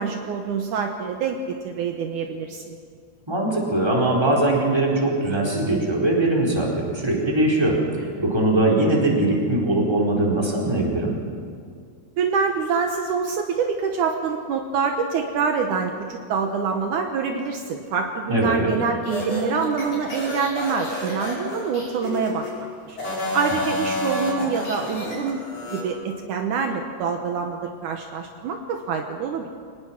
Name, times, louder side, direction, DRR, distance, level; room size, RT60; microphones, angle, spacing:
voice 1, 0.0-1.4 1.6-2.6 12.2-22.5 22.9-23.0 23.3-25.4 25.7-29.5, right 5 dB, 70° right, 4 dB, 2.5 m, -25 dB
voice 2, 3.3-7.8 8.2-11.1 18.3-18.7, right 1 dB, 5° right, -3 dB, 4.1 m, -21 dB
sound 1, 19.0-22.5 22.9-25.8, left 1 dB, 45° left, 5.8 m, -30 dB
24.5 x 19.5 x 6.0 m, 2.2 s
omnidirectional pair, 3.8 m